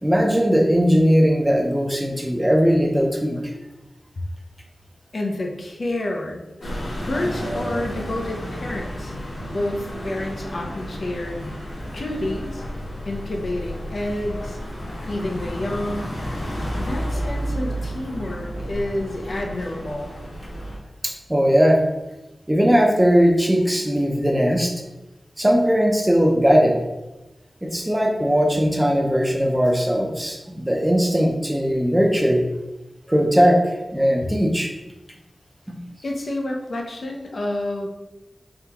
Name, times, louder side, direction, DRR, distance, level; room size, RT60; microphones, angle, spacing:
voice 1, 0.0-3.6 21.0-21.8 22.5-24.7 25.4-26.8 27.6-32.4 33.1-34.7 35.7-35.8, equal, 10° right, 1 dB, 0.6 m, -19 dB
voice 2, 5.1-9.1 9.5-11.5 11.9-12.6 13.0-14.6 15.0-16.1 16.4-20.1 36.0-37.9, left 1 dB, 60° left, 1 dB, 0.6 m, -29 dB
sound 1, 6.6-20.8, equal, 80° left, 1.5 m, -31 dB
3.6 x 3.4 x 2.9 m, 1.0 s
wide cardioid pair, 95°, 0 cm